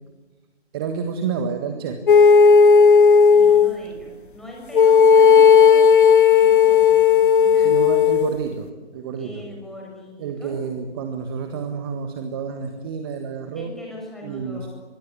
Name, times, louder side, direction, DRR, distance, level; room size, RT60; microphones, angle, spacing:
voice 1, 0.7-2.0 7.6-9.5 10.2-13.7 14.2-14.7, right 6 dB, 20° right, 6 dB, 1.7 m, -29 dB
sound 1, 2.1-3.7 4.7-8.3, left 6 dB, 50° left, 1.0 m, -13 dB
voice 2, 3.2-5.9 6.3-7.9 9.1-10.6 13.5-14.7, equal, ahead, -2 dB, 6.4 m, -40 dB
23.0 x 22.0 x 9.9 m, 1.3 s
figure-of-eight pair, 145°, 33 cm